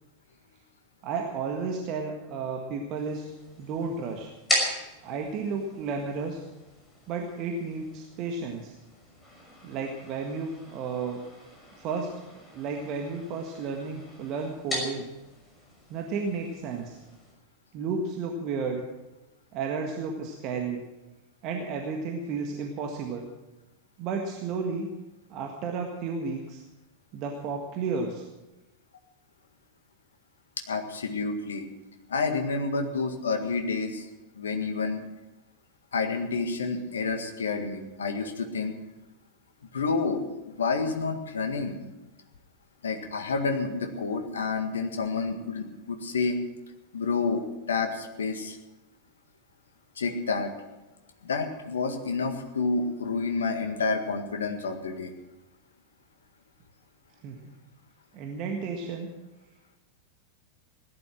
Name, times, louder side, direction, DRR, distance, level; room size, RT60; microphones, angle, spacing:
voice 1, 1.0-3.3 3.6-4.3 5.0-6.4 7.1-8.7 9.6-11.2 11.8-15.1 15.9-17.0 17.7-18.8 19.5-20.8 21.4-23.3 24.0-24.9 25.3-26.6 27.1-28.3 57.2-57.5 58.1-59.1, right 4 dB, 40° right, 2 dB, 1.7 m, -32 dB
sound 1, 3.0-17.3, left 1 dB, 15° left, 5.9 m, -38 dB
voice 2, 30.7-31.7 32.1-34.1 34.4-35.0 35.9-38.7 39.7-41.8 42.8-46.4 46.9-48.6 50.0-50.5 51.2-55.1, left 4 dB, 65° left, 5 dB, 1.8 m, -29 dB
17.0 x 12.0 x 6.2 m, 1.0 s
figure-of-eight pair, 90°, 0 cm